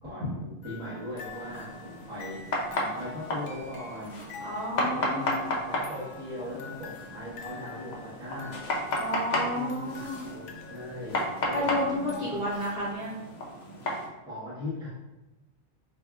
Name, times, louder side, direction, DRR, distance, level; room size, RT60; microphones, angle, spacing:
voice 1, 0.0-2.4 2.8-4.2 4.8-8.6 9.3-12.3 14.3-14.9, left 1 dB, 5° right, -10 dB, 1.2 m, -39 dB
sound 1, 0.6-12.9, left 3 dB, 85° left, 1.0 m, -46 dB
sound 2, 1.3-14.1, left 1 dB, 55° left, 0.5 m, -34 dB
voice 2, 4.4-5.5 8.9-10.2 11.5-13.1, left 1 dB, 45° right, -9 dB, 1.4 m, -31 dB
4.2 x 2.8 x 2.4 m, 1.0 s
omnidirectional pair, 1.4 m